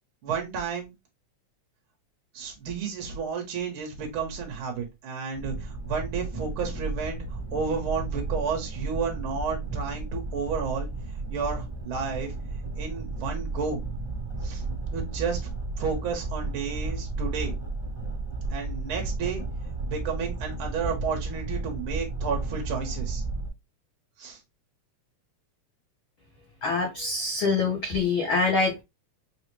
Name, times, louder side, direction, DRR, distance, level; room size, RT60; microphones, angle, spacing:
voice 1, 0.2-0.9 2.3-7.2 7.5-10.9 11.3-12.3 12.8-13.8 14.4-14.6 14.9-15.4 15.8-17.5 18.5-19.4 19.9-23.2 24.2-24.4, right 5 dB, 55° right, 1 dB, 1.7 m, -31 dB
sound 1, 5.3-23.5, right 3 dB, 25° right, 0.5 m, -33 dB
voice 2, 26.6-28.8, left 4 dB, 80° left, 1 dB, 1.1 m, -25 dB
5.1 x 2.4 x 3.1 m, 0.21 s
omnidirectional pair, 3.5 m